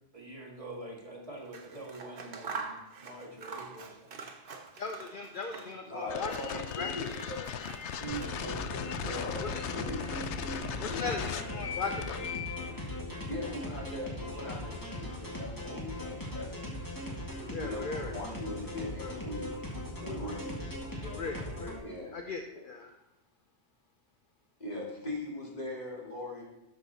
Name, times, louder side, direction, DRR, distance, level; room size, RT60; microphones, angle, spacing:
voice 1, 0.1-4.2 8.0-8.7, right 3 dB, 30° right, -2 dB, 1.8 m, -44 dB
Scissors, 1.4-5.9 6.2-8.8, right 4 dB, 55° right, 1.0 m, -45 dB
voice 2, 4.8-7.0 9.4-9.6 10.8-12.5 17.5-18.1 18.6-19.1 20.0-20.1 21.0-21.8 22.1-22.9, left 4 dB, 55° left, 5 dB, 0.8 m, -39 dB
voice 3, 5.9-7.5 9.0-10.3 10.9-11.0 13.3-16.8 17.6-19.5 20.0-20.5 21.8-22.2 22.5-22.6 24.6-26.4, left 2 dB, 40° left, -4 dB, 2.7 m, -40 dB
sound 1, 6.1-12.7, left 8 dB, 85° left, 0.9 m, -38 dB
sound 2, 8.1-21.8, left 1 dB, 20° left, 1.9 m, -39 dB
12.5 x 6.5 x 4.1 m, 0.92 s
omnidirectional pair, 1.1 m